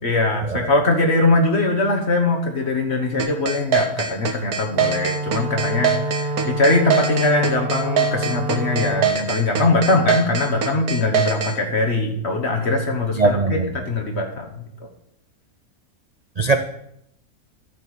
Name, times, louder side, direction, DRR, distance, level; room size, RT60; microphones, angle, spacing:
voice 1, 0.0-14.5, left 2 dB, 45° left, 2 dB, 1.6 m, -21 dB
sound 1, 3.2-11.5, right 7 dB, 85° right, 1.6 m, -22 dB
Wind instrument woodwind instrument, 4.7-9.2, right 2 dB, 40° right, 0.7 m, -27 dB
voice 2, 13.2-13.7 16.4-16.6, right 3 dB, 65° right, 6 dB, 0.4 m, -19 dB
12.0 x 4.6 x 8.0 m, 0.74 s
omnidirectional pair, 1.6 m